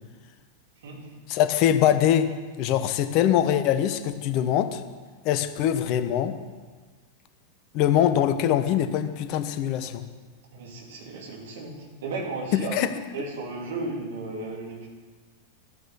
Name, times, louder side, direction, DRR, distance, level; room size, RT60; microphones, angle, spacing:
voice 1, 1.3-2.3 2.6-4.8 5.2-6.4 7.7-10.0 12.5-12.9, left 10 dB, 40° left, 10 dB, 1.0 m, -23 dB
voice 2, 10.5-12.8 13.1-14.9, right 3 dB, 60° right, -2 dB, 3.2 m, -35 dB
12.5 x 9.6 x 6.3 m, 1.4 s
figure-of-eight pair, 90°, 0 cm